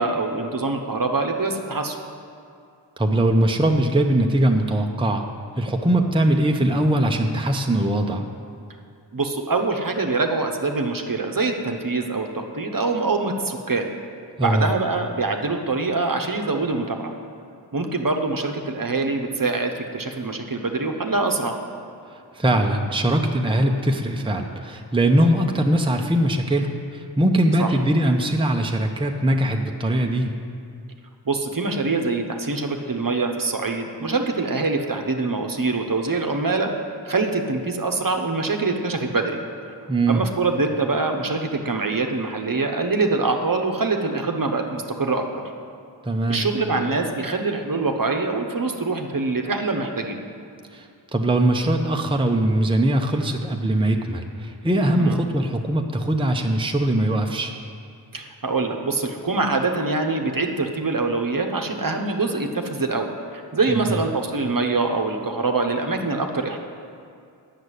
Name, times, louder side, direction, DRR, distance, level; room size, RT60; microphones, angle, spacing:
voice 1, 0.0-2.0 9.1-13.9 14.4-17.1 17.7-21.6 27.6-27.7 31.3-36.7 37.0-39.4 40.1-45.4 46.3-50.3 55.0-55.2 58.1-63.1 63.5-66.6, right 3 dB, 50° right, 4 dB, 0.9 m, -24 dB
voice 2, 3.0-5.3 5.6-8.3 14.4-14.7 22.1-30.3 39.9-40.2 46.0-46.4 50.7-57.5 63.7-64.0, right 1 dB, 10° right, 3 dB, 0.7 m, -21 dB
9.3 x 6.7 x 8.2 m, 2.4 s
wide cardioid pair, 50°, 44 cm